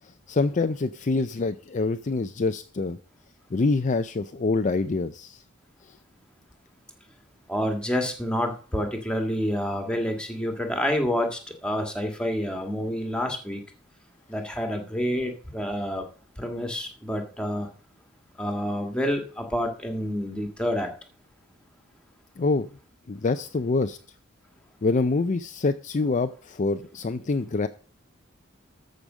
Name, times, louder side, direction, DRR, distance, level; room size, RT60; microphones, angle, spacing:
voice 1, 0.3-3.0 3.5-5.4 22.4-22.7 23.1-24.0 24.8-27.7, left 3 dB, 35° left, 10 dB, 0.5 m, -25 dB
voice 2, 7.5-13.6 14.3-16.0 16.4-17.7 18.4-20.9, equal, 5° left, 4 dB, 1.9 m, -28 dB
13.5 x 5.2 x 6.3 m, 0.39 s
head